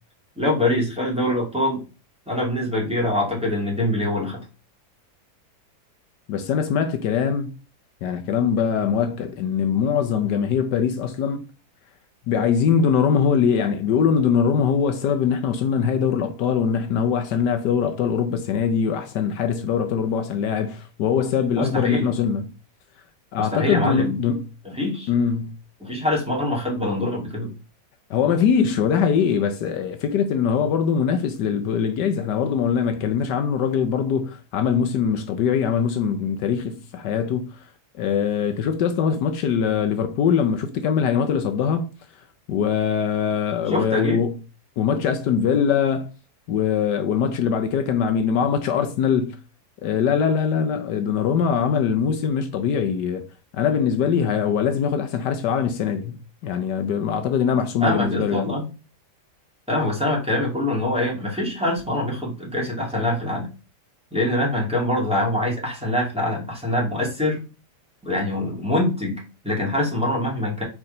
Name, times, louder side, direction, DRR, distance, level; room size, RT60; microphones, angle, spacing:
voice 1, 0.4-1.8 2.3-4.4 21.5-22.1 23.4-24.2 24.6-25.1 25.8-27.5 43.6-44.2 57.8-58.7 59.7-63.5 64.1-67.4 68.0-70.6, left 1 dB, 5° right, 2.8 m, -24 dB
voice 2, 6.3-7.5 8.0-11.4 12.3-22.5 23.3-24.5 25.1-25.6 28.1-37.6 38.0-41.9 42.5-44.4 44.8-46.1 46.5-49.4 49.8-53.2 53.5-58.5, left 7 dB, 80° left, 1.4 m, -22 dB
4.9 x 4.7 x 5.3 m
omnidirectional pair, 1.8 m